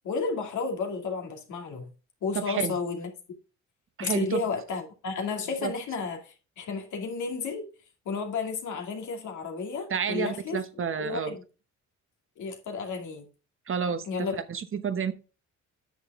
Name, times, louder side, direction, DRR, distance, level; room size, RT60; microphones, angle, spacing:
voice 1, 0.0-1.9 2.2-3.1 4.0-7.6 8.1-10.6 11.0-11.4 12.4-13.3 14.1-14.4, left 4 dB, 75° left, 2.4 m, -32 dB
voice 2, 2.3-2.8 4.0-4.4 5.6-5.7 9.9-11.3 13.7-15.1, right 7 dB, 45° right, 1.0 m, -30 dB
9.3 x 6.4 x 3.6 m
cardioid pair, 90°, 30 cm